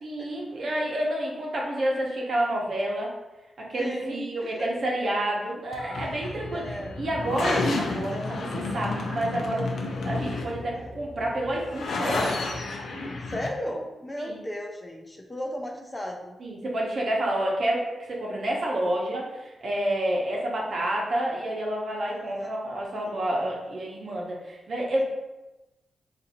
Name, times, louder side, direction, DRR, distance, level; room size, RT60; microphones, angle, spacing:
voice 1, 0.0-3.1 3.6-9.6 10.0-12.3 14.2-14.4 16.4-17.8 18.1-25.0, right 1 dB, 60° right, -3 dB, 0.9 m, -29 dB
voice 2, 3.8-4.7 6.3-7.1 10.7-10.9 13.2-16.4 22.1-22.6 23.3-23.6, equal, 20° left, 1 dB, 0.4 m, -36 dB
sound 1, 5.7-13.5, left 3 dB, 75° left, 0.5 m, -31 dB
2.6 x 2.5 x 4.2 m, 1.0 s
cardioid pair, 95°, 0 cm